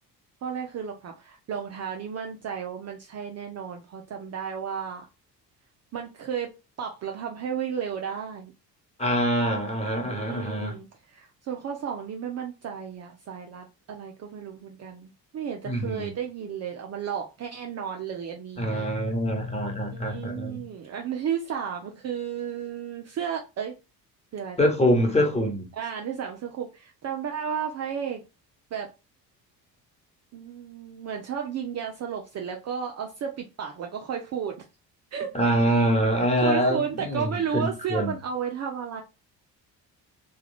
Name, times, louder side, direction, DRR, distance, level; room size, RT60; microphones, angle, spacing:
voice 1, 0.4-5.0 5.9-6.5 6.8-8.5 10.0-19.0 19.9-23.7 24.3-24.7 25.7-28.2 28.7-28.9 30.3-34.6 35.1-35.5 36.4-39.0, right 7 dB, 30° right, 0.6 m, -33 dB
voice 2, 9.0-10.7 15.6-16.1 18.6-20.6 24.6-25.7 35.3-38.1, equal, 15° left, 1.5 m, -25 dB
3.5 x 2.5 x 3.4 m
figure-of-eight pair, 50°, 49 cm